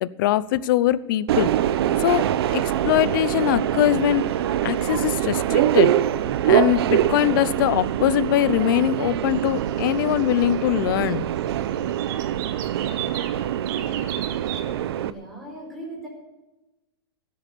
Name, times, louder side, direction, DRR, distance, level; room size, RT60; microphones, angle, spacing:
voice 1, 0.0-1.5 2.0-2.2 2.5-4.3 4.6-5.9 6.4-11.2, left 13 dB, 55° left, 16 dB, 0.7 m, -22 dB
Subway metro underground, 1.3-15.1, right 11 dB, 70° right, 0.8 m, -24 dB
sound 1, 9.2-10.8 11.0-11.1 11.4-13.4 13.7-14.6, right 10 dB, 45° right, 1.4 m, -37 dB
voice 2, 14.7-16.1, right 1 dB, ahead, -4 dB, 4.9 m, -39 dB
16.0 x 8.7 x 6.9 m, 1.0 s
supercardioid pair, 160°, 14 cm